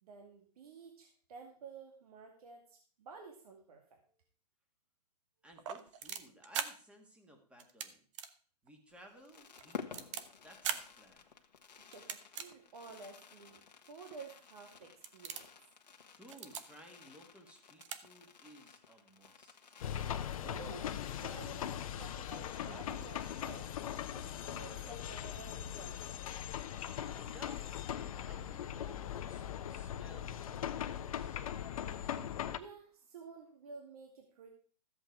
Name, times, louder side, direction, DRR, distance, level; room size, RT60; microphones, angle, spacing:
voice 1, 0.0-4.0 11.8-15.5 20.4-23.7 24.1-26.2 32.6-34.5, right 4 dB, 60° right, 3 dB, 2.3 m, -52 dB
voice 2, 5.4-8.0 8.6-11.3 16.1-19.8 27.1-27.9 28.2-32.2, equal, 5° right, 4 dB, 1.9 m, -58 dB
sound 1, 5.5-6.7 7.6-7.9 8.1-8.3 8.7-8.8 9.3-10.2 10.6-10.8 11.9-12.5 13.1-13.2 14.1-14.2 14.6-14.8 15.0-15.5 16.2-16.6 17.5-17.6 17.8-18.0 18.2-18.3, right 8 dB, 45° right, 1.1 m, -40 dB
Fireworks, 8.9-24.1 24.4-24.5 24.7-24.9, left 6 dB, 90° left, 1.5 m, -54 dB
sound 2, 19.8-32.6, left 10 dB, 55° left, 1.0 m, -40 dB
14.0 x 8.1 x 4.7 m, 0.41 s
hypercardioid pair, 145°, 21 cm